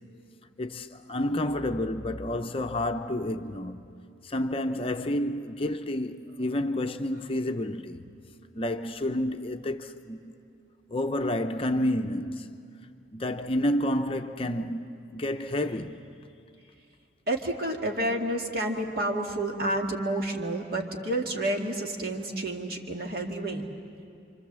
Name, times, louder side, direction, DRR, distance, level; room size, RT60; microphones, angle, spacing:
voice 1, 0.6-3.8 4.2-8.0 8.5-10.3 10.9-12.5 13.1-16.0, left 1 dB, 30° left, 0.7 m, -30 dB
voice 2, 17.3-23.7, right 1 dB, 55° right, 2.2 m, -30 dB
28.0 x 25.5 x 7.5 m
head